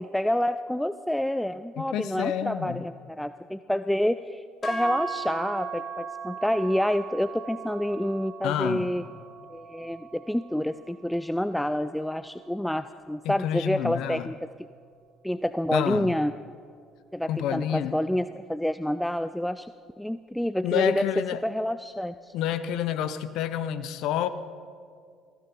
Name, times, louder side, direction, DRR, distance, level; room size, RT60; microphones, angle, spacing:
voice 1, 0.0-9.0 9.5-14.5 15.2-16.3 17.1-19.7 20.0-22.3, left 1 dB, 5° left, 12 dB, 0.4 m, -28 dB
voice 2, 1.8-2.8 8.4-8.9 13.2-14.3 15.7-16.1 17.3-18.0 20.6-21.4 22.3-24.3, left 10 dB, 60° left, 13 dB, 0.7 m, -28 dB
sound 1, 4.6-12.9, right 4 dB, 35° left, 3.1 m, -38 dB
19.0 x 15.5 x 4.0 m, 2.2 s
figure-of-eight pair, 55°, 0 cm